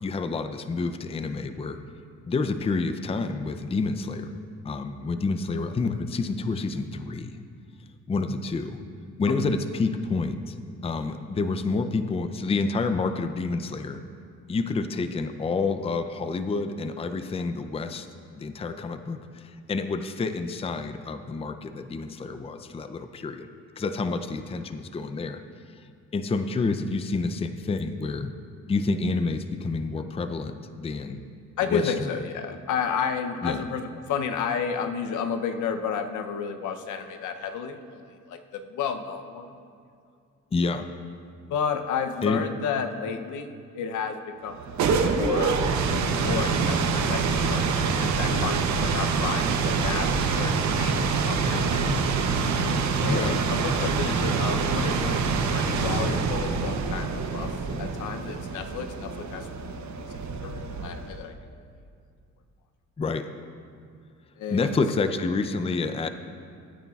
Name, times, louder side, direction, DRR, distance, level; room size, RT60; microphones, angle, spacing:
voice 1, 0.0-1.8 2.3-4.4 4.6-7.4 8.1-8.8 9.2-10.6 10.8-14.0 14.5-18.1 18.4-23.5 23.8-25.4 25.8-25.9 26.1-28.3 28.7-31.2 31.7-31.9 33.4-33.6 40.5-40.9 42.2-42.4 53.0-53.4 63.0-63.3 64.5-66.1, left 3 dB, 20° left, 9 dB, 0.5 m, -28 dB
voice 2, 31.6-39.5 41.5-44.6 44.9-45.6 45.9-51.9 53.0-59.8 60.4-61.3 64.4-64.8, left 6 dB, 75° left, 7 dB, 0.7 m, -32 dB
sound 1, 44.5-61.2, right 5 dB, 65° right, 0.8 m, -26 dB
15.0 x 9.1 x 2.4 m, 2.3 s
cardioid pair, 90°, 30 cm